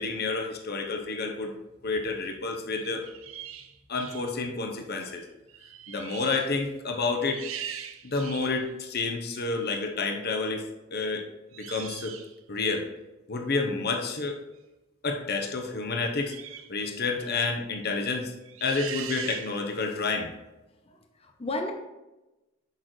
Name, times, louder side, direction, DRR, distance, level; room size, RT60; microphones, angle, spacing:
voice 1, 0.0-1.5 1.8-3.1 3.9-5.2 5.9-7.4 8.0-10.6 10.9-11.2 11.6-12.1 12.5-12.8 13.3-14.4 15.0-16.3 16.7-18.3 18.6-20.3, left 3 dB, 50° left, 3 dB, 0.9 m, -29 dB
sound 1, 2.7-4.3 5.0-5.2 5.5-6.6 7.0-8.6 9.3-9.5 11.5-12.4 16.3-16.7 17.1-17.4 18.5-19.8, right 9 dB, 80° right, 0.6 m, -41 dB
voice 2, 20.9-21.7, left 2 dB, 30° left, 4 dB, 0.8 m, -34 dB
8.2 x 6.5 x 3.2 m, 1.0 s
head